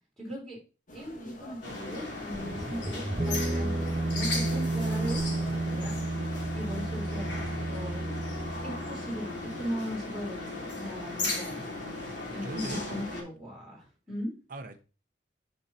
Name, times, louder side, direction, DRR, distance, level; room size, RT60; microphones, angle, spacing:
voice 1, 0.2-0.6 0.9-5.2 5.7-6.0 6.5-8.1 8.6-11.6 12.3-14.3, equal, ahead, 3.6 m, -38 dB
sound 1, 0.9-5.9, left 1 dB, 45° left, 1.5 m, -48 dB
sound 2, 1.6-13.2, left 2 dB, 75° left, 3.1 m, -37 dB
sound 3, 2.3-9.8, right 2 dB, 20° right, 0.5 m, -32 dB
voice 2, 5.5-6.0 12.0-13.1 14.5-14.8, right 2 dB, 50° right, 0.8 m, -43 dB
7.0 x 5.5 x 4.1 m
head